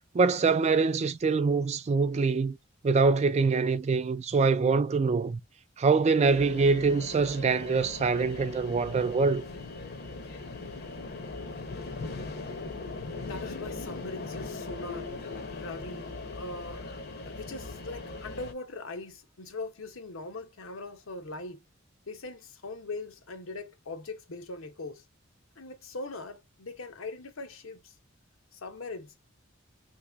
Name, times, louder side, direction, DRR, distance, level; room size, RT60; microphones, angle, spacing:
voice 1, 0.1-2.6 2.8-5.4 5.8-9.4, right 4 dB, 35° right, 0.3 m, -24 dB
sound 1, 6.3-18.5, left 3 dB, 50° left, 0.8 m, -39 dB
voice 2, 13.2-16.8 17.2-21.6 22.1-25.0 25.6-27.9 28.5-29.2, left 3 dB, 80° left, 0.9 m, -41 dB
3.0 x 2.9 x 3.4 m
head